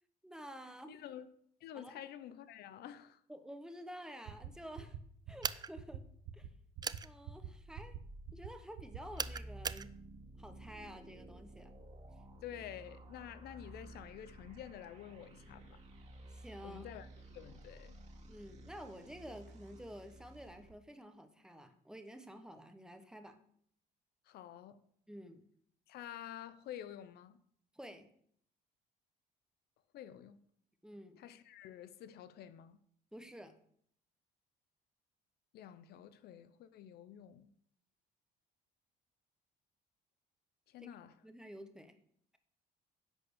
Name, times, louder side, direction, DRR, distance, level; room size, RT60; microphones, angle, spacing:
voice 1, 0.2-1.0 1.7-1.9 3.3-5.0 5.3-6.0 6.3-6.5 7.0-8.0 8.3-9.9 10.4-11.7 16.3-16.9 18.3-23.3 25.1-25.4 27.7-28.1 30.8-31.2 33.1-33.5 40.8-40.9 41.2-42.0, equal, 5° right, 1.0 m, -50 dB
voice 2, 0.9-1.3 1.6-3.2 12.4-15.8 16.6-18.0 24.3-24.8 25.9-27.4 29.9-30.4 31.2-32.8 35.5-37.5 40.7-41.1, left 10 dB, 70° left, 0.6 m, -49 dB
sound 1, 4.3-4.5 4.8-5.0 5.3-5.5 5.7-6.0 6.2-6.5 6.8-7.0 7.2-7.5 7.7-8.0 8.3-8.5 8.8-9.0, right 12 dB, 75° right, 0.8 m, -45 dB
sound 2, 5.4-5.7 6.8-7.1 9.2-9.9, right 6 dB, 25° right, 0.3 m, -38 dB
sound 3, 7.5-20.7, right 1 dB, 45° right, 2.1 m, -53 dB
10.5 x 4.3 x 6.9 m
cardioid pair, 110°, 17 cm